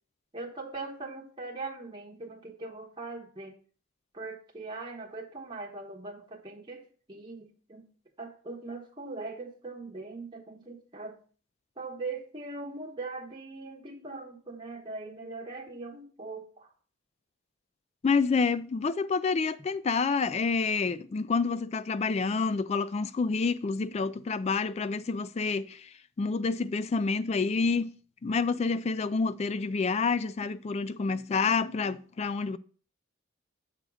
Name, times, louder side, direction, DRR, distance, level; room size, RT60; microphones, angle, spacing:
voice 1, 0.3-3.5 4.1-7.9 8.2-11.2 11.8-16.7, right 3 dB, 25° right, 1.1 m, -41 dB
voice 2, 18.0-25.9 26.2-27.9 28.2-32.6, left 4 dB, 30° left, 0.3 m, -28 dB
7.6 x 3.7 x 6.2 m
head